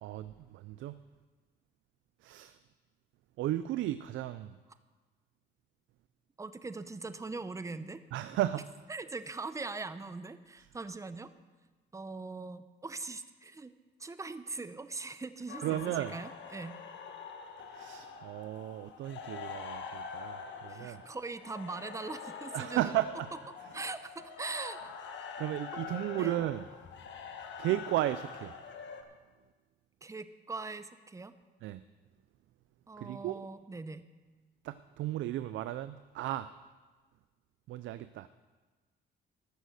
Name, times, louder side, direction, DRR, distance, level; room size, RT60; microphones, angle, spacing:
voice 1, 0.0-1.0 2.2-2.6 3.4-4.6 8.1-8.7 15.6-16.1 17.7-21.0 22.5-23.3 25.4-26.6 27.6-28.6 31.6-31.8 33.0-33.4 34.6-36.5 37.7-38.3, right 14 dB, 80° right, 13 dB, 0.4 m, -34 dB
voice 2, 6.4-8.0 8.9-11.3 11.9-13.7 14.0-16.8 20.7-23.0 23.7-24.9 26.2-26.3 30.0-31.3 32.9-34.0, right 3 dB, 15° right, 12 dB, 0.6 m, -41 dB
sound 1, 15.5-29.0, left 6 dB, 65° left, 1.2 m, -45 dB
14.5 x 6.5 x 6.4 m, 1.3 s
cardioid pair, 90°, 20 cm